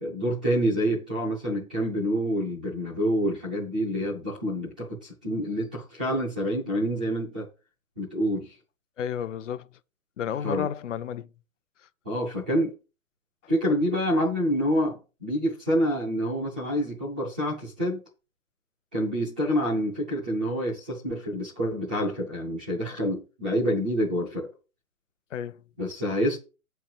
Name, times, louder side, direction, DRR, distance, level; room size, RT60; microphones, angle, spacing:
voice 1, 0.0-7.5 8.0-8.5 10.4-10.7 12.0-12.7 13.5-18.0 18.9-24.5 25.8-26.4, equal, 5° right, 0.4 m, -27 dB
voice 2, 9.0-9.7 10.2-11.3 25.3-25.6, left 9 dB, 65° left, 0.8 m, -31 dB
8.3 x 4.6 x 7.1 m
hypercardioid pair, 160°, 40 cm